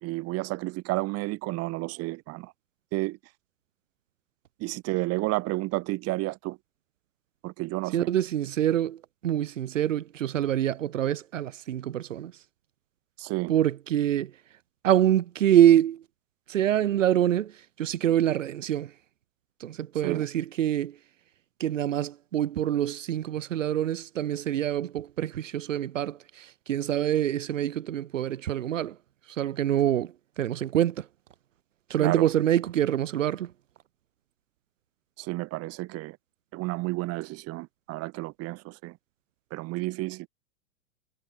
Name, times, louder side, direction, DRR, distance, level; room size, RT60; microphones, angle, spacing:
voice 1, 0.0-2.5 2.9-3.2 4.6-6.6 7.4-8.1 13.2-13.5 20.0-20.3 32.0-32.3 35.2-36.2 36.5-39.0 39.5-40.3, right 21 dB, 40° right, 3.4 m, -31 dB
voice 2, 7.9-9.0 9.2-12.3 13.5-14.3 14.8-16.0 16.5-17.5 17.8-18.9 19.6-20.9 21.6-28.9 29.4-31.0 31.9-33.5, right 11 dB, 75° right, 2.8 m, -25 dB
hypercardioid pair, 120°, 38 cm